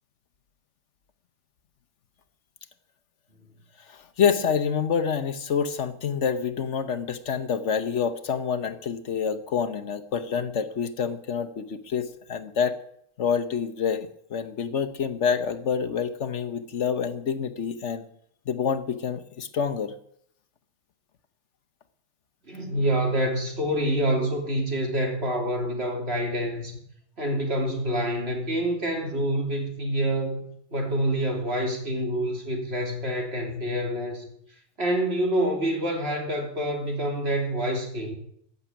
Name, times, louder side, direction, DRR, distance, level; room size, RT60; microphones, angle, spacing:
voice 1, 3.9-12.8 13.2-18.0 18.5-19.9, left 7 dB, 65° left, 9 dB, 1.2 m, -27 dB
voice 2, 22.5-26.8 27.2-34.2 34.8-38.1, right 1 dB, 50° right, 2 dB, 3.3 m, -27 dB
15.0 x 7.1 x 9.9 m, 0.70 s
omnidirectional pair, 1.4 m